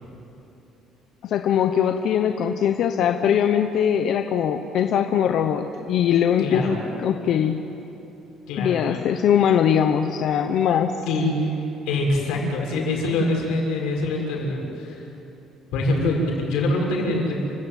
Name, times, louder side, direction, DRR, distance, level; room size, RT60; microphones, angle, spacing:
voice 1, 1.2-7.6 8.6-11.0, left 8 dB, 50° left, 6 dB, 0.9 m, -21 dB
voice 2, 6.4-6.8 8.5-9.0 11.0-15.1 15.7-17.4, left 2 dB, 90° left, 0 dB, 6.5 m, -24 dB
30.0 x 16.0 x 9.3 m, 3.0 s
cardioid pair, 175°, 0 cm